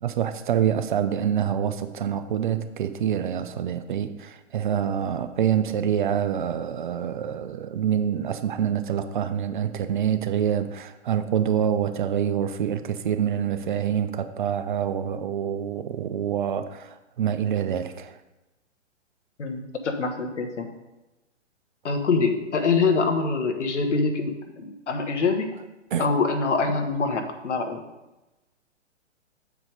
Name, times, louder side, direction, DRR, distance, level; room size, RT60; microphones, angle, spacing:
voice 1, 0.0-18.2 25.9-26.1, right 9 dB, 45° right, 0.5 m, -26 dB
voice 2, 19.4-20.7 21.8-25.5 26.0-27.8, left 4 dB, 70° left, 1.2 m, -25 dB
7.2 x 4.7 x 5.1 m
figure-of-eight pair, 120°, 36 cm